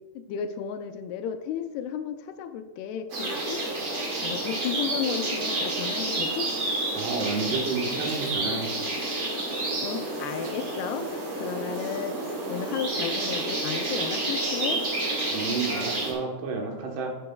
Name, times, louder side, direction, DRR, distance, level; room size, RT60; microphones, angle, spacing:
voice 1, 0.2-3.6 4.0-6.5 9.8-14.8, left 8 dB, 85° left, 8 dB, 2.5 m, -34 dB
sound 1, 3.1-16.1, right 2 dB, 40° right, 2.1 m, -29 dB
voice 2, 6.9-8.7 15.3-17.1, right 4 dB, 80° right, 1 dB, 3.2 m, -30 dB
15.0 x 7.6 x 2.3 m, 1.3 s
omnidirectional pair, 4.7 m